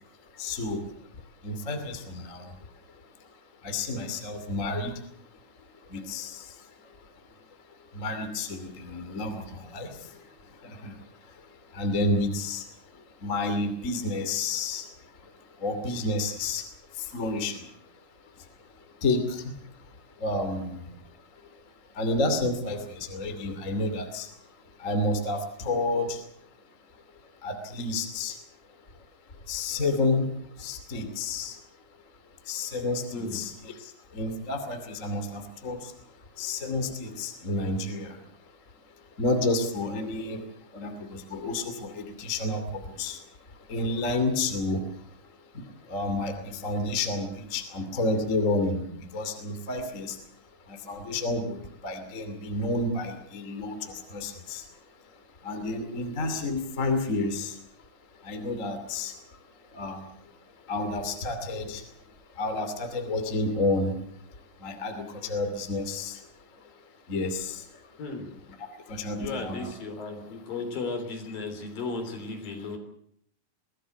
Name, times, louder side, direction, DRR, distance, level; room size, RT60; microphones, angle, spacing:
voice 1, 0.4-0.8 1.4-2.5 3.6-4.9 5.9-6.4 7.9-9.9 10.6-10.9 11.7-12.6 13.2-14.9 15.6-16.6 17.1-17.6 19.0-19.5 20.2-20.9 22.0-24.3 24.8-26.2 27.4-28.3 29.5-30.3 30.6-31.6 32.5-35.9 36.4-38.2 39.2-40.4 40.7-43.2 43.7-44.8 45.9-50.2 50.7-54.6 55.4-57.5 58.2-59.1 59.7-60.0 60.7-61.8 62.4-63.9 64.6-66.2 67.1-67.6 68.9-69.7, left 2 dB, 25° left, 7 dB, 2.1 m, -30 dB
voice 2, 68.0-68.3 69.2-72.8, left 3 dB, 55° left, 6 dB, 5.1 m, -35 dB
23.5 x 17.0 x 8.2 m, 0.70 s
omnidirectional pair, 5.1 m